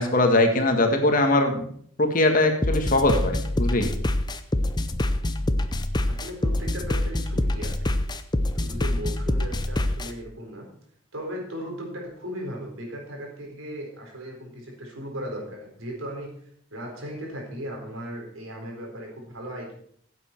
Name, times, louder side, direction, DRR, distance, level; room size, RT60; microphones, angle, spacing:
voice 1, 0.0-1.7 2.0-3.9, left 2 dB, 40° left, 4 dB, 1.7 m, -21 dB
sound 1, 2.6-10.1, left 1 dB, 20° left, 0.6 m, -25 dB
voice 2, 6.1-7.8 8.5-10.7 11.1-16.3 16.7-19.7, equal, 80° right, 1 dB, 4.2 m, -37 dB
16.0 x 8.2 x 4.5 m, 0.62 s
head